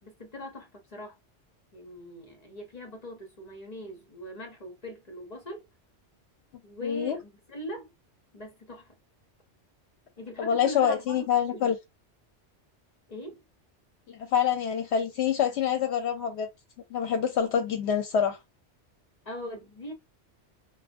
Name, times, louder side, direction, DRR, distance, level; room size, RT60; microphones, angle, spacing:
voice 1, 0.0-1.2 1.7-5.6 6.6-7.9 8.3-8.9 10.2-11.7 13.1-13.4 19.2-19.9, equal, 40° left, 0.7 m, -41 dB
voice 2, 6.8-7.2 10.4-11.8 14.1-16.5 16.9-18.4, left 8 dB, 70° left, 0.8 m, -26 dB
2.3 x 2.2 x 2.5 m
omnidirectional pair, 1.2 m